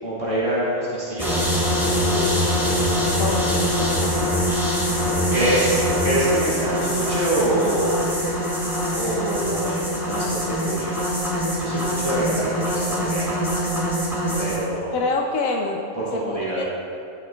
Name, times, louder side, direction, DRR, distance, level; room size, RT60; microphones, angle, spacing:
voice 1, 0.0-1.5 5.3-7.9 8.9-11.1 11.6-13.3 14.3-14.9 15.9-16.6, right 1 dB, 20° left, -10 dB, 1.6 m, -25 dB
sound 1, 1.2-14.6, equal, ahead, 1.6 m, -23 dB
voice 2, 2.0-2.4 3.2-4.5 14.9-15.8 16.1-16.6, left 3 dB, 75° left, 0 dB, 1.1 m, -27 dB
14.0 x 6.4 x 2.3 m, 2.6 s
omnidirectional pair, 1.5 m